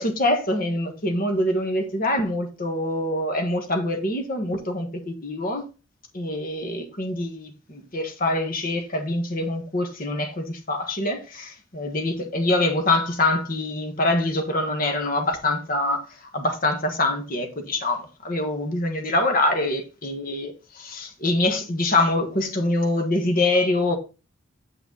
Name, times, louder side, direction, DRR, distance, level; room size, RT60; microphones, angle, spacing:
voice 1, 0.0-5.6 6.1-24.0, left 2 dB, 45° left, 1.5 m, -25 dB
8.0 x 6.1 x 3.9 m
head